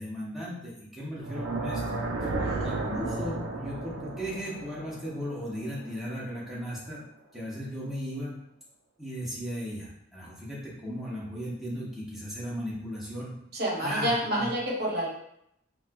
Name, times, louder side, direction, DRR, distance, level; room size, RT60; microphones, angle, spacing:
voice 1, 0.0-2.3 2.6-7.0 7.3-8.4 9.0-13.3 13.8-14.5, equal, ahead, -8 dB, 0.8 m, -36 dB
sound 1, 1.1-6.3, right 2 dB, 65° right, 0.4 m, -33 dB
voice 2, 2.4-2.7 13.5-15.1, equal, 50° right, -3 dB, 0.9 m, -29 dB
4.2 x 2.2 x 2.2 m, 0.76 s
head